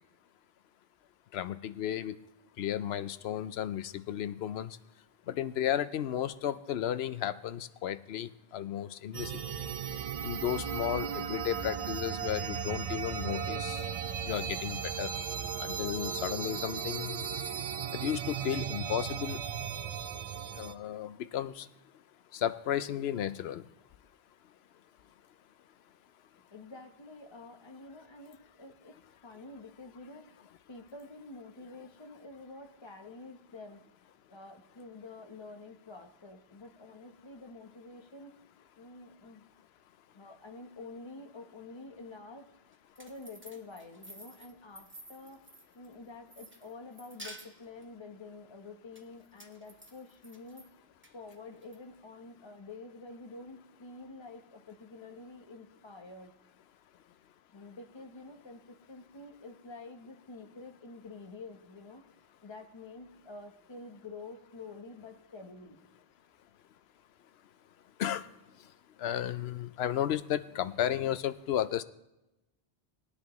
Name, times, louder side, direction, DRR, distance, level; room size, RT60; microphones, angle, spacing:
voice 1, 1.3-2.2 2.6-4.8 5.3-9.4 10.2-13.9 14.2-15.1 15.6-17.3 17.9-19.4 20.5-21.7 22.3-23.6 68.0-68.3 69.0-71.8, left 10 dB, 75° left, 13 dB, 0.8 m, -33 dB
sound 1, 9.1-20.7, right 7 dB, 55° right, 0.4 m, -36 dB
voice 2, 26.5-33.8 34.3-38.4 38.8-39.4 40.1-42.5 43.0-45.4 45.7-50.7 51.1-56.3 57.5-62.1 62.4-65.8, left 3 dB, 25° left, 4 dB, 1.0 m, -48 dB
sound 2, 42.7-45.9 46.3-47.8 49.0-50.7 51.0-51.8, right 1 dB, 10° right, 1.0 m, -51 dB
20.0 x 9.9 x 3.1 m, 0.95 s
omnidirectional pair, 1.1 m